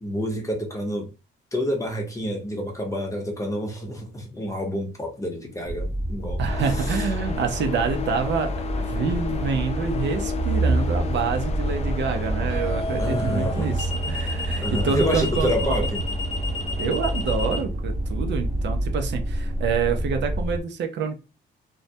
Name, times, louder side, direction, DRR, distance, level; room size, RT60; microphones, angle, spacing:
voice 1, 0.0-1.1 1.5-6.4 6.8-7.1 13.0-13.7 14.6-16.0, equal, 15° left, 0.8 m, -28 dB
sound 1, 5.7-20.6, right 2 dB, 30° right, 0.9 m, -28 dB
voice 2, 6.4-8.5 8.8-15.7 16.8-21.2, right 6 dB, 65° right, 0.5 m, -27 dB
sound 2, 6.5-17.6, left 5 dB, 35° left, 0.4 m, -33 dB
sound 3, 9.2-9.5 12.5-17.6, left 3 dB, 85° left, 0.6 m, -32 dB
2.1 x 2.1 x 2.7 m
cardioid pair, 90°, 20 cm